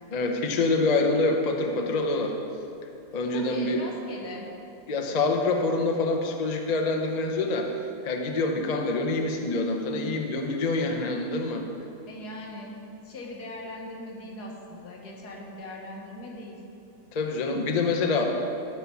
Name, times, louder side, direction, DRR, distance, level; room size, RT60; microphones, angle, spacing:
voice 1, 0.1-2.3 3.1-3.8 4.9-7.7 8.0-11.6 17.1-18.2, left 3 dB, 45° left, 3 dB, 0.5 m, -26 dB
voice 2, 3.3-4.5 12.1-16.6, left 1 dB, 75° left, -1 dB, 1.8 m, -40 dB
13.0 x 5.6 x 4.6 m, 2.7 s
omnidirectional pair, 1.7 m